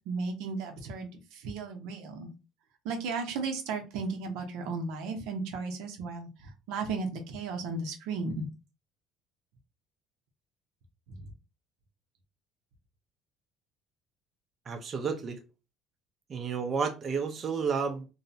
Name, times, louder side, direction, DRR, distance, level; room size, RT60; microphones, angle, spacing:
voice 1, 0.1-2.3 2.8-8.5 11.1-11.3, right 4 dB, 80° right, 0.7 m, -35 dB
voice 2, 14.7-15.4 16.3-18.1, right 5 dB, 35° right, 0.5 m, -31 dB
2.7 x 2.0 x 2.6 m
cardioid pair, 115°, 0 cm